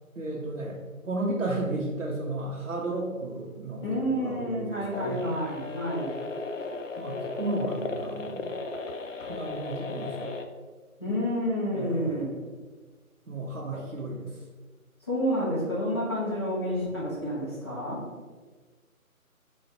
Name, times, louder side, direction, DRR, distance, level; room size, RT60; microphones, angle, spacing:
voice 1, 0.1-5.4 7.0-8.5 9.3-10.3 11.7-12.4 13.3-14.4, right 2 dB, 65° right, -4 dB, 0.9 m, -34 dB
voice 2, 3.8-6.1 11.0-12.3 15.1-18.0, equal, 20° left, -11 dB, 0.8 m, -29 dB
sound 1, 4.9-10.4, left 3 dB, 60° left, 0.5 m, -35 dB
4.0 x 2.5 x 4.6 m, 1.4 s
figure-of-eight pair, 155°, 43 cm